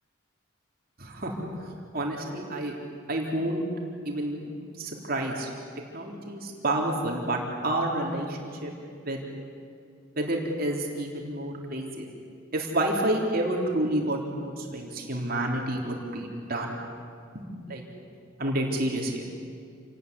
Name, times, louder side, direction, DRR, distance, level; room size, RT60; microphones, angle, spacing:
voice 1, 1.0-2.7 3.1-3.6 4.1-4.5 4.8-5.5 5.9-8.7 9.0-9.2 10.2-12.1 12.5-16.7 17.3-17.8 18.4-19.2, right 1 dB, 45° right, 0 dB, 3.7 m, -29 dB
28.0 x 19.5 x 9.9 m, 2.3 s
head